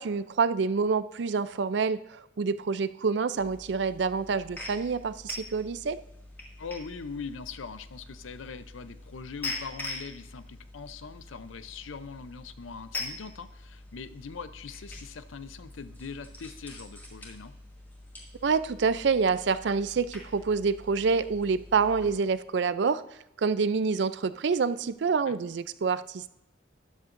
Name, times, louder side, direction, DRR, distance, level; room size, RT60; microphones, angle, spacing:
voice 1, 0.0-2.0 2.4-6.0 18.4-23.0 23.4-26.3, right 5 dB, 60° right, 14 dB, 0.4 m, -27 dB
sound 1, 3.4-22.2, left 2 dB, 10° left, 2.1 m, -44 dB
voice 2, 6.6-17.6 25.3-25.4, left 5 dB, 90° left, 12 dB, 0.6 m, -42 dB
13.0 x 11.0 x 2.6 m, 0.88 s
head